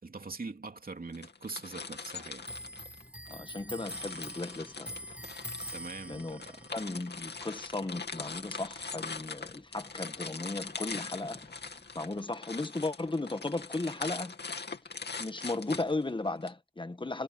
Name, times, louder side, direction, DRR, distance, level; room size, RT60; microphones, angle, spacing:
voice 1, 0.0-2.5 5.7-6.6, right 3 dB, 55° right, 2.9 m, -42 dB
sound 1, 1.1-3.4 3.8-16.5, left 4 dB, 70° left, 2.6 m, -42 dB
Clock, 2.4-9.5 9.7-11.1 11.3-12.2, equal, 5° right, 7.0 m, -46 dB
voice 2, 3.3-4.9 6.1-6.4 6.7-11.4 11.9-14.3 15.2-17.2, left 2 dB, 30° left, 1.5 m, -35 dB
wide cardioid pair, 60°, 18 cm